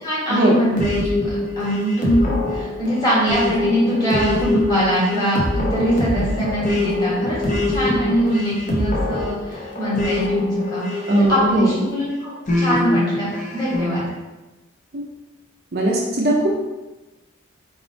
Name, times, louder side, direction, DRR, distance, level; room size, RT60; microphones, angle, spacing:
voice 1, 0.0-7.4 7.7-11.0 11.3-12.3 12.6-14.1, equal, 20° left, -8 dB, 1.5 m, -22 dB
sound 1, 0.8-11.8 12.5-14.0, left 2 dB, 40° left, 0.6 m, -24 dB
voice 2, 10.9-11.9 14.9-15.1 15.7-16.5, right 1 dB, 45° right, -2 dB, 0.5 m, -20 dB
3.4 x 2.6 x 3.9 m, 1.1 s
head